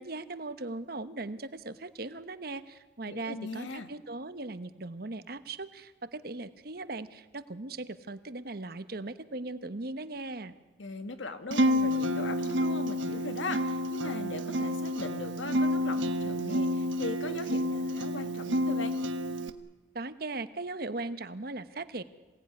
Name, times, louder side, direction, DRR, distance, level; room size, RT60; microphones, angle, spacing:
voice 1, 0.0-10.5 19.9-22.0, right 2 dB, 55° right, 12 dB, 1.1 m, -39 dB
voice 2, 3.1-3.9 10.8-19.0, left 2 dB, 85° left, 8 dB, 1.9 m, -39 dB
Acoustic guitar, 11.5-19.5, equal, 85° right, 1.4 m, -29 dB
26.5 x 18.0 x 9.7 m, 1.2 s
head